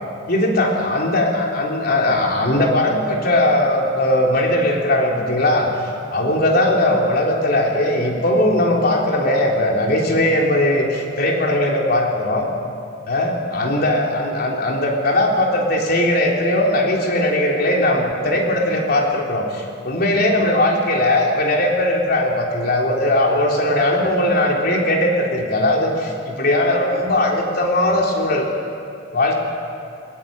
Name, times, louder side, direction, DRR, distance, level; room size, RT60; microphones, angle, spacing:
voice 1, 0.3-5.7 6.1-12.5 13.1-28.5 29.1-29.4, left 1 dB, 55° left, 0 dB, 3.7 m, -19 dB
20.5 x 18.0 x 8.9 m, 2.5 s
head